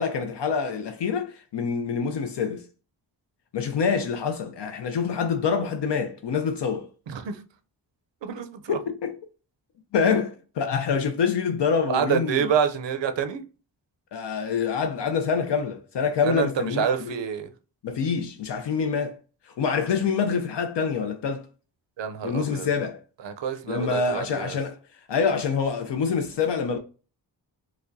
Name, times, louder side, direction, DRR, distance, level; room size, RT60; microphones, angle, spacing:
voice 1, 0.0-2.7 3.5-6.9 8.7-9.2 9.9-12.5 14.1-17.1 17.8-19.2 19.4-21.5 22.2-23.0 23.7-24.8 25.1-26.8, left 6 dB, 75° left, 0.6 m, -26 dB
voice 2, 7.1-7.4 8.2-8.8 11.9-13.4 16.2-17.5 22.0-22.7 23.2-24.6, right 7 dB, 90° right, 0.6 m, -27 dB
4.7 x 2.1 x 2.6 m
wide cardioid pair, 90°, 42 cm